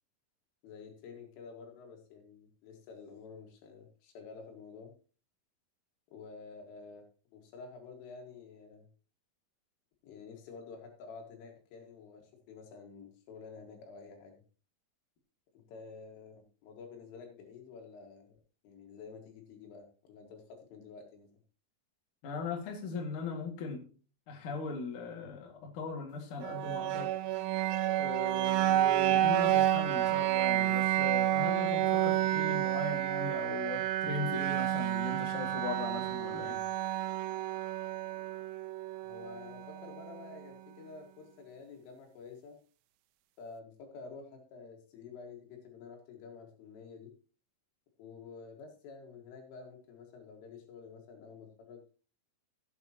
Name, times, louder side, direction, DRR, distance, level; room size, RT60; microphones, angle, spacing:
voice 1, 0.6-4.9 6.1-7.0 7.3-8.9 10.0-14.3 15.5-18.4 18.6-21.3 39.0-42.6 43.4-47.1 48.0-51.8, left 5 dB, 75° left, 2 dB, 4.4 m, -50 dB
voice 2, 22.2-23.8 24.3-27.1 28.0-36.6, left 4 dB, 50° left, 1 dB, 2.9 m, -39 dB
sound 1, 26.4-40.4, right 13 dB, 85° right, 2.5 m, -30 dB
16.0 x 8.7 x 3.0 m, 0.38 s
omnidirectional pair, 5.9 m